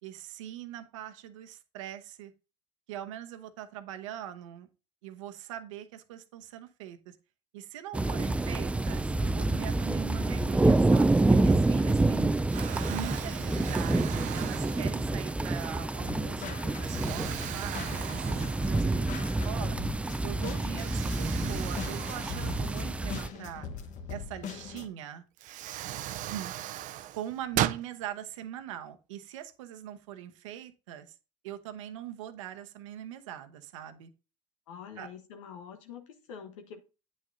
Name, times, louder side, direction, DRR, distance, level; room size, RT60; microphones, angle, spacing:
voice 1, 0.0-2.3 2.9-4.7 5.0-7.2 7.5-12.3 12.9-19.8 20.2-23.7 24.1-25.2 26.2-26.5 27.2-31.1 31.4-34.1 35.0-35.1, right 11 dB, 85° right, 0.9 m, -42 dB
sound 1, 7.9-23.3, right 2 dB, 10° right, 0.4 m, -28 dB
Explosion, 11.8-12.2 12.5-15.3 15.9-16.1 16.8-19.1 19.4-19.5 20.7-23.4 24.8-24.9 25.4-27.9, right 13 dB, 55° right, 0.5 m, -37 dB
sound 2, 16.1-24.9, left 6 dB, 50° left, 1.1 m, -42 dB
voice 2, 34.7-36.8, left 7 dB, 90° left, 1.0 m, -46 dB
9.1 x 6.5 x 2.6 m
supercardioid pair, 85°, 16 cm